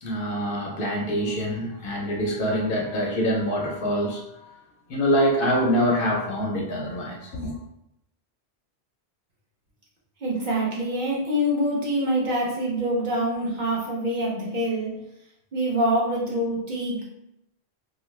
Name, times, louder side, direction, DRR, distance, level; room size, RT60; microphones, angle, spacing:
voice 1, 0.0-4.6 4.9-7.6, equal, 60° left, -1 dB, 0.7 m, -25 dB
voice 2, 10.2-14.9 15.5-17.0, equal, 50° right, -4 dB, 0.8 m, -25 dB
2.5 x 2.3 x 3.1 m, 0.80 s
omnidirectional pair, 1.1 m